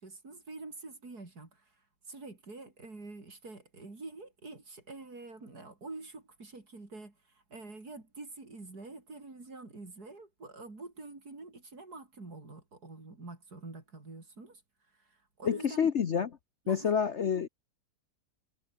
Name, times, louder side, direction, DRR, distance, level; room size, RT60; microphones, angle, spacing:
voice 1, 0.0-1.7 2.1-14.6 15.0-15.9 16.6-16.9, right 3 dB, 70° right, 4.9 m, -47 dB
voice 2, 15.4-16.3 16.7-17.5, left 7 dB, 50° left, 1.2 m, -28 dB
omnidirectional pair, 1.7 m